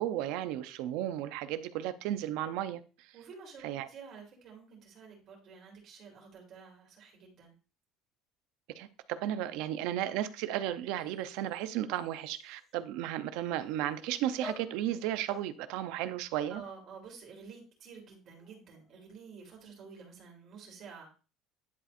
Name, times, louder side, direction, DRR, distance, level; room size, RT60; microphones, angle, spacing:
voice 1, 0.0-3.1 3.6-3.9 8.8-16.6, right 12 dB, 75° right, 0.6 m, -34 dB
voice 2, 3.1-7.5 16.5-21.1, right 5 dB, 40° right, 3.0 m, -50 dB
sound 1, 8.8-8.9 10.8-12.8 13.6-14.1 14.4-17.1 18.1-19.4, left 4 dB, 15° left, 0.7 m, -53 dB
10.5 x 4.2 x 2.5 m
cardioid pair, 165°, 0 cm